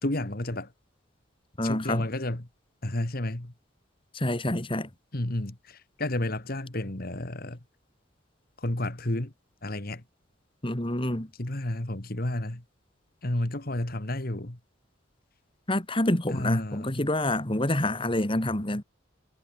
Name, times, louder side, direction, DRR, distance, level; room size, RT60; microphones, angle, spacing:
voice 1, 0.0-0.7 1.6-2.5 2.8-3.5 5.1-7.6 8.6-9.3 9.6-10.0 11.3-12.6 13.2-14.6 16.3-17.1, left 1 dB, 45° left, 2.0 m, -31 dB
voice 2, 1.6-2.0 4.1-4.9 10.6-11.3 15.7-18.8, left 1 dB, 25° left, 2.1 m, -27 dB
head